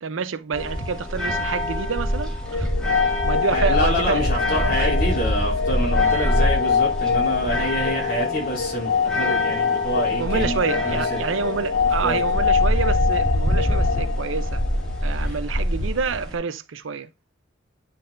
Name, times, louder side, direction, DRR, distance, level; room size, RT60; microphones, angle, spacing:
voice 1, 0.0-2.7 3.2-4.9 6.2-6.5 7.8-8.4 10.2-14.6 15.0-17.1, right 5 dB, 80° right, 0.6 m, -28 dB
sound 1, 0.5-16.4, equal, 5° left, 2.0 m, -25 dB
sound 2, 2.5-15.2, left 6 dB, 80° left, 0.4 m, -25 dB
voice 2, 3.5-10.6 10.8-11.2 12.0-12.5 15.1-15.4, equal, 45° left, 3.0 m, -27 dB
9.6 x 4.0 x 2.5 m
head